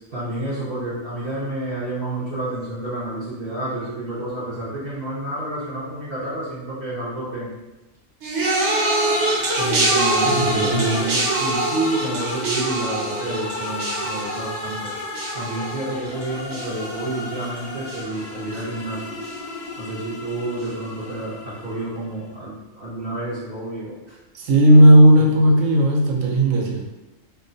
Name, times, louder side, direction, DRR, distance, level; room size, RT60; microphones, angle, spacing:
voice 1, 0.0-7.5 9.6-14.9 15.3-19.1 19.8-24.2 25.0-25.1, right 1 dB, 50° right, -9 dB, 1.0 m, -29 dB
sound 1, 8.2-17.6 17.9-18.4 19.3-19.4, right 2 dB, 65° right, 1.1 m, -25 dB
sound 2, 8.3-22.2, left 3 dB, 60° left, 0.6 m, -33 dB
voice 2, 10.2-11.0 18.5-18.6 24.3-26.8, right 1 dB, 90° right, -1 dB, 1.0 m, -14 dB
3.1 x 2.2 x 3.8 m, 1.0 s
omnidirectional pair, 1.3 m